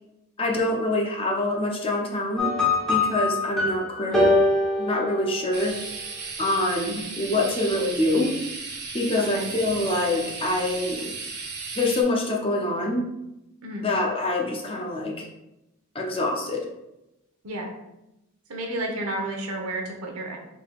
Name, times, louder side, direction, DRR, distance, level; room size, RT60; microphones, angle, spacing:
voice 1, 0.4-2.5 2.9-4.3 4.8-5.8 6.4-8.4 8.9-11.1 11.8-13.1 13.8-15.3 15.9-16.7, left 1 dB, 25° left, 0 dB, 0.5 m, -25 dB
sound 1, 2.4-5.8, left 2 dB, ahead, 0.9 m, -23 dB
sound 2, 5.5-12.0, right 4 dB, 50° right, 0.7 m, -35 dB
voice 2, 9.2-9.5 13.6-13.9 17.4-17.7 18.5-20.4, right 1 dB, 80° right, 1 dB, 0.9 m, -31 dB
4.6 x 3.8 x 2.3 m, 0.91 s
head